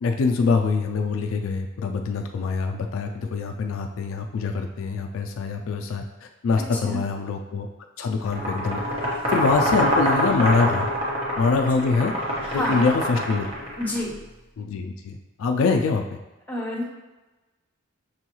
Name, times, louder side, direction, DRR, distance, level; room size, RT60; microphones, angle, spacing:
voice 1, 0.0-7.7 8.0-8.8 9.3-10.9 11.4-12.1 12.5-13.5 14.6-16.2, left 4 dB, 70° left, 4 dB, 0.3 m, -24 dB
voice 2, 6.7-7.0 12.4-12.8 13.8-14.2 16.5-16.8, left 1 dB, 10° left, -4 dB, 1.1 m, -28 dB
sound 1, 8.2-14.0, equal, 30° right, 1.1 m, -25 dB
6.1 x 2.3 x 3.0 m, 1.1 s
head